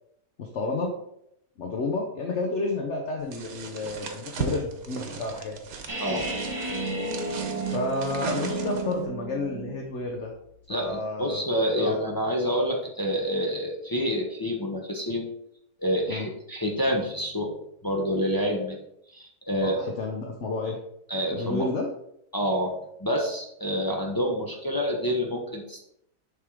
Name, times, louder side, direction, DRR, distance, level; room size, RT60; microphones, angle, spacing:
voice 1, 0.4-1.0 1.6-5.6 7.7-10.3 10.7-11.4 11.8-12.0 16.1-16.3 19.6-20.8 21.3-21.9, left 3 dB, 55° left, 1 dB, 0.9 m, -31 dB
sound 1, 3.3-9.0, right 5 dB, 65° right, 1.3 m, -37 dB
sound 2, 5.9-9.9, right 2 dB, 30° right, 1.5 m, -32 dB
voice 2, 10.7-15.3 15.8-17.5 17.8-18.8 19.1-19.8 21.1-21.7 22.3-25.8, equal, 25° left, 0 dB, 0.4 m, -27 dB
6.7 x 3.6 x 4.7 m, 0.76 s
omnidirectional pair, 1.8 m